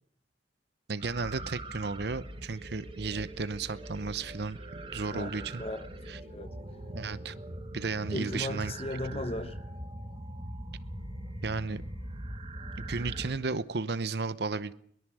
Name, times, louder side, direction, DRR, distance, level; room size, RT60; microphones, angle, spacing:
voice 1, 0.9-4.6 4.9-5.6 6.1-6.2 6.9-7.3 7.7-8.7 9.1-9.2 11.4-11.8 12.9-14.7, right 4 dB, 60° right, 16 dB, 0.8 m, -34 dB
sound 1, 1.0-13.3, right 1 dB, 30° right, 3.4 m, -42 dB
voice 2, 5.1-6.5 8.1-9.6, left 1 dB, 35° left, 11 dB, 1.3 m, -37 dB
22.0 x 21.5 x 6.3 m, 0.63 s
head